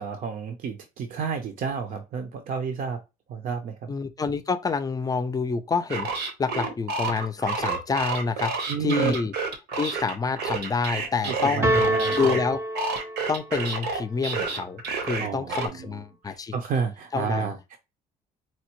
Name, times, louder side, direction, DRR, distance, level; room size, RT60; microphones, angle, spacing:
voice 1, 0.0-3.0 3.3-3.9 8.7-9.1 11.2-12.4 15.2-17.8, right 6 dB, 55° right, 0.6 m, -31 dB
voice 2, 3.9-9.3 9.7-12.6 13.3-16.5 17.1-17.5, left 5 dB, 20° left, 0.5 m, -28 dB
sound 1, 5.9-12.4 12.8-15.7, right 4 dB, 80° right, 0.9 m, -29 dB
sound 2, 11.6-13.6, right 1 dB, 15° right, 0.7 m, -26 dB
4.3 x 2.0 x 2.9 m
cardioid pair, 110°, 17 cm